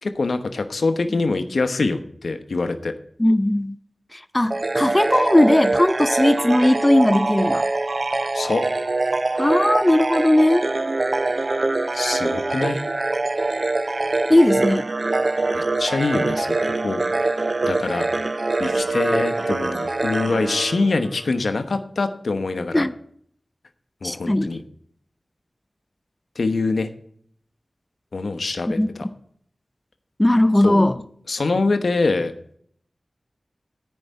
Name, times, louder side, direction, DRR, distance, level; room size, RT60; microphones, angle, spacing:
voice 1, 0.0-2.9 8.3-8.6 11.9-12.8 15.5-17.3 17.6-18.1 18.6-22.8 24.0-24.6 26.3-26.9 28.1-29.1 30.6-30.9 31.3-32.3, left 3 dB, 80° left, 1.1 m, -24 dB
voice 2, 3.2-3.7 4.1-7.6 9.4-10.7 14.3-14.9 22.7-22.9 24.0-24.5 28.8-28.9 30.2-31.0, left 1 dB, 20° left, 0.6 m, -18 dB
sound 1, 4.5-21.3, right 2 dB, 55° right, 0.7 m, -24 dB
14.0 x 5.6 x 9.4 m
cardioid pair, 40°, 0 cm